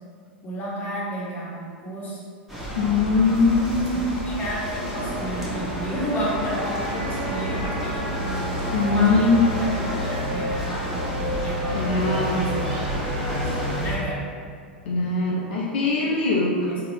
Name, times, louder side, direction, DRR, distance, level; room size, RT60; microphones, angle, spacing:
voice 1, 0.4-2.2 2.9-3.4 3.9-8.1 8.9-12.8 13.3-14.2 16.0-16.1 16.6-16.8, right 1 dB, 25° left, -6 dB, 1.0 m, -32 dB
sound 1, 2.5-14.0, equal, 5° right, 1.0 m, -32 dB
voice 2, 2.8-4.2 8.7-9.5 11.7-12.5 14.9-16.7, left 3 dB, 65° left, -4 dB, 0.4 m, -21 dB
sound 2, 4.9-13.8, right 1 dB, 50° right, 0.9 m, -32 dB
sound 3, 6.9-13.9, left 1 dB, 25° right, 0.7 m, -32 dB
3.9 x 2.0 x 3.1 m, 2.1 s
figure-of-eight pair, 95°, 6 cm